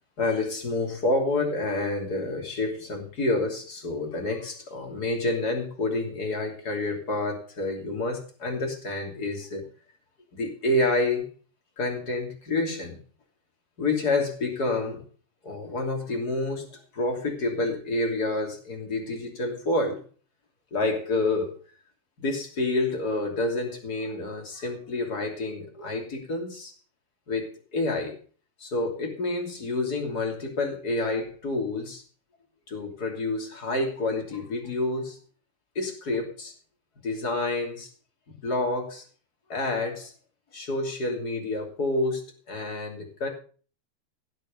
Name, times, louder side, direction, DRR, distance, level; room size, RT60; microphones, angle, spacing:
voice 1, 0.2-9.6 10.3-11.3 11.8-13.0 13.8-15.0 15.4-20.0 20.7-21.6 22.2-26.7 27.3-28.2 28.6-32.0 32.7-35.2 35.7-36.5 37.0-37.9 38.3-39.0 39.5-40.1 40.5-43.3, left 2 dB, 25° left, 2 dB, 2.9 m, -28 dB
17.0 x 7.4 x 5.3 m, 0.40 s
omnidirectional pair, 4.8 m